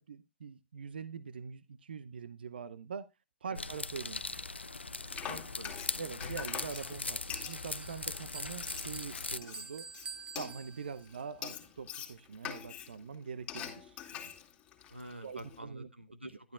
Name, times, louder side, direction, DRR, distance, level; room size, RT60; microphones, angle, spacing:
voice 1, 0.0-3.1 3.4-4.4 5.9-9.9 10.3-14.3 15.2-15.9, right 6 dB, 60° right, 0.7 m, -44 dB
sound 1, 3.5-9.4, left 3 dB, 80° left, 0.5 m, -40 dB
Frying (food), 4.7-15.6, left 9 dB, 25° left, 2.2 m, -46 dB
voice 2, 5.3-5.8 14.9-16.5, right 1 dB, 90° right, 1.2 m, -47 dB
Bell, 6.7-11.2, right 5 dB, 10° right, 0.8 m, -49 dB
12.0 x 11.5 x 2.4 m
figure-of-eight pair, 115°, 6 cm